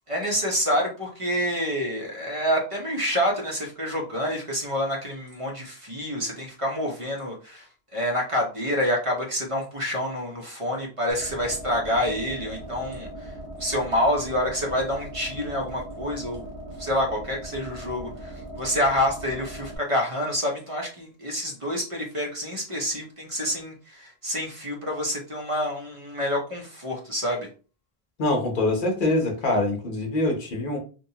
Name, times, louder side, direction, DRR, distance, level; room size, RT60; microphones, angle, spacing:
voice 1, 0.1-13.3 13.6-16.5 16.8-27.5, equal, 35° right, 0 dB, 0.6 m, -27 dB
sound 1, 11.1-19.8, right 1 dB, 30° left, 0.8 m, -39 dB
voice 2, 28.2-30.8, left 2 dB, 55° left, 1 dB, 0.9 m, -24 dB
2.8 x 2.2 x 2.7 m, 0.36 s
omnidirectional pair, 1.0 m